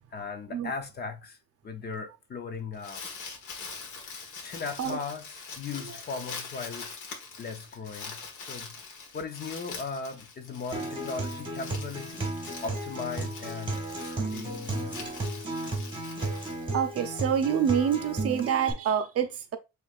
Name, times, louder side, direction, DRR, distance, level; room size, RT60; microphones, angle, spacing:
voice 1, 0.1-1.4 1.6-3.0 4.4-6.9 7.4-8.2 8.5-8.8 9.1-15.5, left 5 dB, 30° left, 0.6 m, -38 dB
Crumpling crinkling, 2.5-17.2, left 4 dB, 75° left, 1.4 m, -43 dB
Acoustic guitar, 10.7-18.7, right 2 dB, 15° right, 1.5 m, -34 dB
voice 2, 16.7-19.6, right 8 dB, 50° right, 0.7 m, -27 dB
6.8 x 3.1 x 2.4 m
cardioid pair, 155°, 31 cm